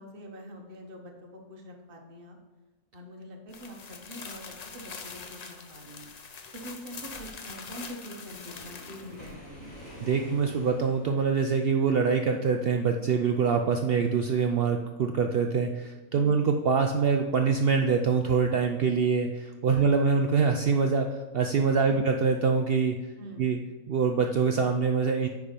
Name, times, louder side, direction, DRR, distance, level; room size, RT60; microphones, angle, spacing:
voice 1, 0.0-2.4 2.9-10.2 16.1-16.4 19.7-20.2 23.2-23.5, equal, 40° right, 1 dB, 1.3 m, -45 dB
sound 1, 3.5-9.3, left 5 dB, 50° left, 0.5 m, -43 dB
Waves surf, 8.0-11.3, equal, 30° left, 2.8 m, -48 dB
voice 2, 10.0-22.9 23.4-23.6 23.9-25.3, right 5 dB, 75° right, 4 dB, 0.5 m, -25 dB
9.6 x 3.6 x 5.1 m, 1.2 s
omnidirectional pair, 1.5 m